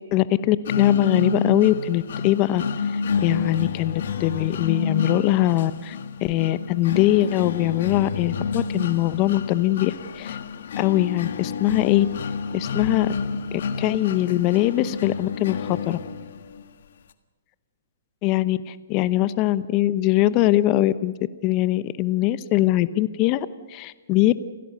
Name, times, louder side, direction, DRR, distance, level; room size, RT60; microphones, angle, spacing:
voice 1, 0.0-10.4 10.8-12.1 12.5-13.1 13.5-16.0 18.2-21.1 21.4-24.4, left 15 dB, 35° left, 15 dB, 0.9 m, -22 dB
sound 1, 0.7-16.6, left 5 dB, 65° left, 1.6 m, -29 dB
29.5 x 16.5 x 6.8 m, 1.3 s
hypercardioid pair, 125°, 0 cm